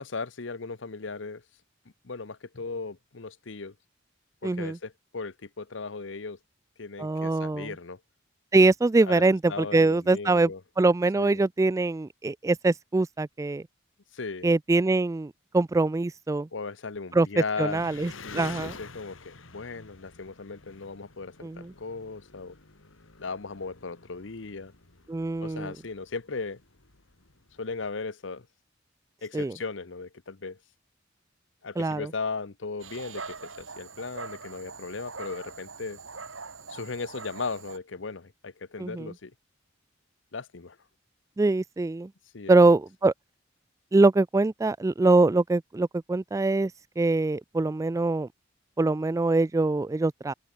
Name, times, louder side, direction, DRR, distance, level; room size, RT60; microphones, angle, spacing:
voice 1, 0.0-1.4 2.0-3.7 4.4-6.4 6.8-8.0 9.1-9.2 9.5-10.6 11.2-11.4 14.1-14.5 16.5-22.6 23.2-24.7 25.4-26.6 27.6-28.5 29.2-30.6 31.6-36.0 36.7-39.3 40.3-40.8 42.3-42.6, left 4 dB, 65° left, 0.9 m, -37 dB
voice 2, 4.4-4.8 7.0-7.7 8.5-10.5 10.8-13.6 14.4-16.5 17.1-17.3 17.6-18.7 21.4-21.7 25.1-25.7 29.3-29.5 31.8-32.1 38.8-39.1 41.4-42.1 42.5-43.1 43.9-46.7 47.0-48.3 48.8-50.3, right 2 dB, 15° right, 0.3 m, -23 dB
Engine, 17.7-27.9, left 4 dB, 90° left, 2.7 m, -49 dB
Dog, 32.8-37.8, right 4 dB, 85° right, 3.7 m, -42 dB
open air
head